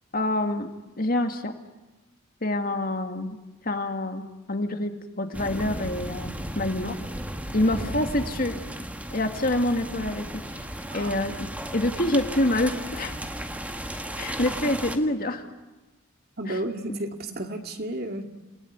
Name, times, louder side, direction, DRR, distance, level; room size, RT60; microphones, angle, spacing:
voice 1, 0.1-0.7 1.0-1.5 2.4-3.4 3.6-7.0 7.5-8.6 9.1-10.7 10.9-11.5 11.7-13.2 14.2-15.4 16.5-16.6, left 1 dB, 45° left, 6 dB, 2.4 m, -26 dB
sound 1, 5.3-15.0, right 1 dB, 5° right, 1.8 m, -35 dB
voice 2, 16.4-18.2, right 1 dB, 50° right, 5 dB, 2.3 m, -32 dB
29.5 x 19.5 x 9.6 m, 1.1 s
head